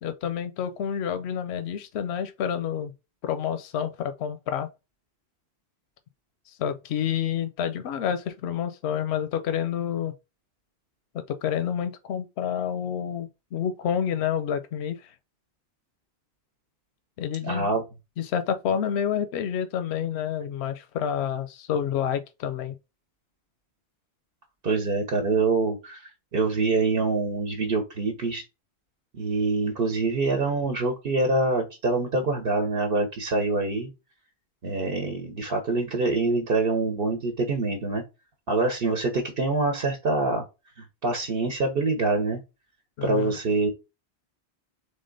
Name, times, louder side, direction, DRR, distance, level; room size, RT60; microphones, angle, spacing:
voice 1, 0.0-2.9 3.2-4.7 6.5-10.1 11.1-15.1 17.2-17.7 18.2-22.8 43.0-43.4, left 8 dB, 85° left, 0.8 m, -29 dB
voice 2, 17.4-17.8 24.6-28.4 29.1-33.9 34.6-38.0 38.5-40.4 41.0-42.4 43.0-43.7, right 3 dB, 65° right, 1.1 m, -25 dB
3.8 x 3.4 x 3.8 m
omnidirectional pair, 1.1 m